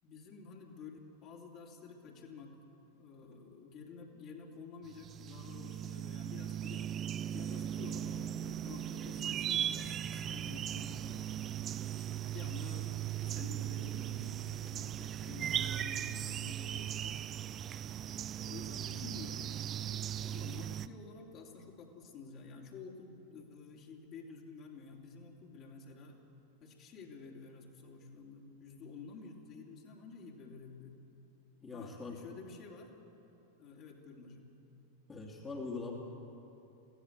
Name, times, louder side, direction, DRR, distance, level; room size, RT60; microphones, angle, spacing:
voice 1, 0.0-2.6 3.0-6.9 7.3-11.3 12.1-17.2 18.4-19.5 20.2-26.2 26.6-31.0 31.7-33.0 33.6-34.5, left 4 dB, 35° left, -1 dB, 3.1 m, -50 dB
sound 1, 4.9-20.9, right 10 dB, 30° right, 0.6 m, -38 dB
voice 2, 31.6-32.2 35.1-35.9, left 3 dB, 20° left, -1 dB, 2.7 m, -42 dB
23.0 x 16.0 x 8.1 m, 3.0 s
figure-of-eight pair, 90°, 0 cm